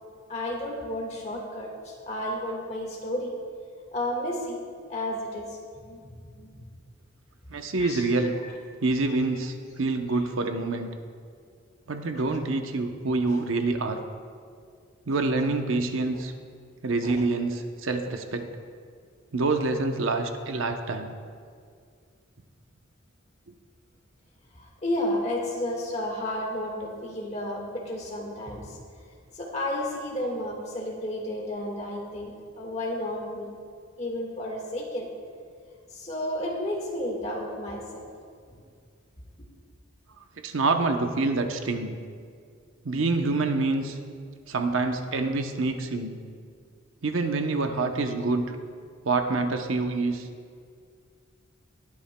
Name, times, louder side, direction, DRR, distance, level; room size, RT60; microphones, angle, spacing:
voice 1, 0.3-3.3 3.9-4.6 4.9-6.6 7.8-8.1 8.4-8.5 13.3-13.4 17.0-17.2 24.5-28.8 29.3-33.5 34.0-35.1 35.9-38.0 38.5-38.6, left 1 dB, 35° left, -2 dB, 1.6 m, -32 dB
voice 2, 7.5-8.4 8.8-10.9 11.9-14.0 15.1-16.3 16.8-18.5 19.3-21.1 40.4-42.0 42.8-44.0 44.5-46.1 47.0-48.5 49.0-50.3, right 3 dB, 75° right, 6 dB, 0.7 m, -26 dB
19.5 x 8.6 x 2.2 m, 2.1 s
head